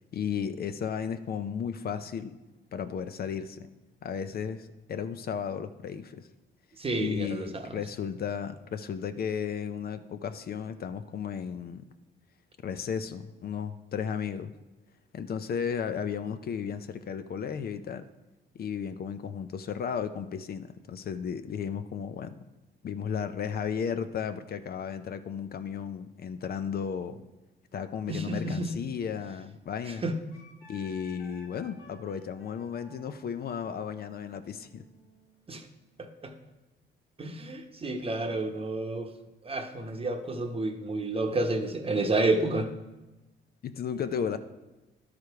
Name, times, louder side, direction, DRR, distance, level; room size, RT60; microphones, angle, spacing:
voice 1, 0.1-2.4 2.7-3.7 4.0-6.3 7.0-11.8 12.6-14.5 15.1-18.1 18.5-22.4 22.8-27.2 27.7-30.0 30.7-34.8 43.6-44.4, left 7 dB, 50° left, 10 dB, 0.5 m, -34 dB
voice 2, 6.8-7.8 28.1-28.7 29.9-30.2 35.5-35.7 36.0-36.3 37.2-39.1 39.4-42.7, right 2 dB, 30° right, 5 dB, 0.9 m, -30 dB
Wind instrument woodwind instrument, 30.3-35.7, equal, 85° left, 2.0 m, -55 dB
12.0 x 4.9 x 4.7 m, 1.1 s
cardioid pair, 90°, 20 cm